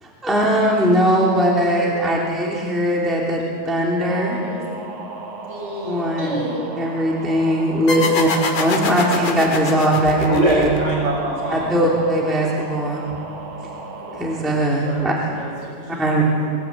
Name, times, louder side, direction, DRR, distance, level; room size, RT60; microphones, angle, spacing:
voice 1, 0.0-4.4 5.8-6.3 6.8-8.3 8.6-10.7 11.5-13.0 14.2-15.1 16.0-16.2, equal, ahead, -3 dB, 2.8 m, -20 dB
sound 1, 4.0-14.4, right 3 dB, 35° right, 3.9 m, -35 dB
voice 2, 5.5-6.6 7.9-8.0 10.3-11.7 14.0-14.2, right 1 dB, 20° right, -2 dB, 6.4 m, -24 dB
voice 3, 6.1-6.5 14.8-16.5, right 2 dB, 60° right, -4 dB, 8.1 m, -38 dB
sound 2, 7.9-11.2, left 4 dB, 65° left, 3.3 m, -25 dB
23.5 x 16.5 x 9.2 m, 2.4 s
omnidirectional pair, 3.9 m